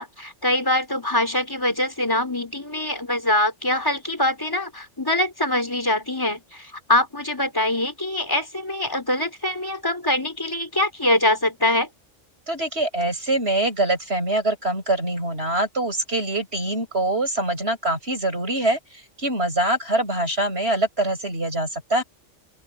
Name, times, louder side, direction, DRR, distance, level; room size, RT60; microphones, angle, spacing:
voice 1, 0.0-11.9, left 1 dB, 15° left, 4.9 m, -23 dB
voice 2, 12.5-18.8 19.2-22.0, right 1 dB, 55° right, 8.3 m, -24 dB
open air
omnidirectional pair, 1.3 m